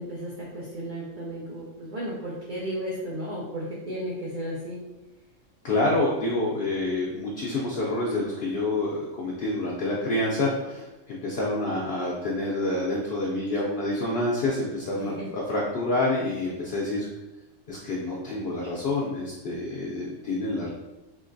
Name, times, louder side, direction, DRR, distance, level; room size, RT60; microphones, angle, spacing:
voice 1, 0.0-4.8 15.0-15.4, equal, 55° right, -5 dB, 0.6 m, -34 dB
voice 2, 5.6-17.1 17.7-20.7, left 2 dB, 60° left, -4 dB, 0.7 m, -27 dB
3.7 x 2.5 x 2.5 m, 1.0 s
omnidirectional pair, 1.4 m